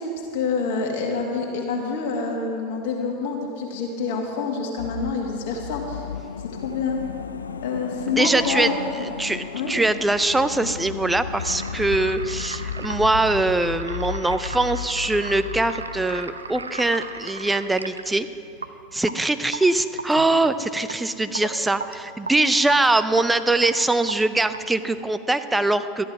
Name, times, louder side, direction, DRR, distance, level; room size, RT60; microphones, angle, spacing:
voice 1, 0.0-6.1 6.5-7.0 7.6-8.7 9.5-9.7 21.3-21.4, left 4 dB, 60° left, 0 dB, 1.7 m, -27 dB
sound 1, 4.8-17.2 17.5-17.6, left 7 dB, 80° left, 0.3 m, -34 dB
voice 2, 8.1-8.7 9.2-18.3 18.9-26.0, right 2 dB, 10° right, 11 dB, 0.6 m, -22 dB
sound 2, 11.4-25.0, right 4 dB, 85° right, 0.5 m, -36 dB
13.5 x 10.5 x 4.7 m, 2.5 s
figure-of-eight pair, 85°, 0 cm